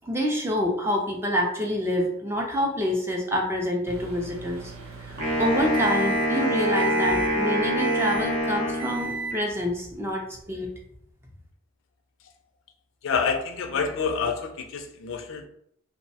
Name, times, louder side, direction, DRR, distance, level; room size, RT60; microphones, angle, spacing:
voice 1, 0.0-4.7 5.0-10.7, equal, 10° right, 0 dB, 0.3 m, -27 dB
Microwave oven, 3.9-6.4 6.8-7.3 7.8-8.4 8.8-9.4, right 4 dB, 90° right, 0.6 m, -34 dB
Wind instrument woodwind instrument, 5.2-9.4, equal, 55° right, 0.8 m, -25 dB
voice 2, 13.0-15.5, left 5 dB, 70° left, 5 dB, 0.4 m, -27 dB
2.5 x 2.0 x 2.6 m, 0.71 s
head